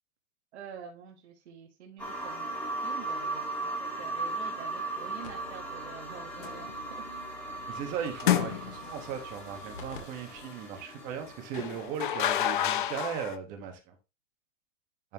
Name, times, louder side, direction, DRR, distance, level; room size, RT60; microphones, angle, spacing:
voice 1, 0.5-6.7 7.0-7.4, right 8 dB, 55° right, 1.4 m, -47 dB
sound 1, 2.0-12.2 12.5-12.6, right 2 dB, 5° left, 1.5 m, -38 dB
sound 2, 5.2-10.0 10.4-10.5 11.1-11.2 11.8-11.9 12.1-12.3 13.6-13.7, left 4 dB, 75° left, 2.2 m, -51 dB
sound 3, 6.4-6.7 8.2-9.0 11.5-13.4, left 11 dB, 40° left, 0.5 m, -29 dB
voice 2, 7.7-13.9, right 8 dB, 20° right, 1.2 m, -37 dB
11.0 x 4.2 x 2.9 m
supercardioid pair, 170°, 39 cm